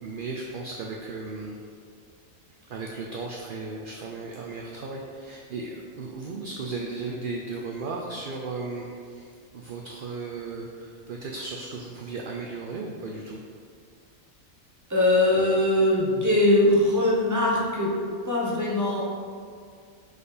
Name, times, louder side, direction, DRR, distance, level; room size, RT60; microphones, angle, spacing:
voice 1, 0.0-1.6 2.7-13.4, right 3 dB, 60° right, -1 dB, 0.6 m, -35 dB
voice 2, 14.9-17.9 18.2-19.0, left 1 dB, 15° right, -4 dB, 1.0 m, -21 dB
4.9 x 4.4 x 5.0 m, 2.2 s
omnidirectional pair, 1.4 m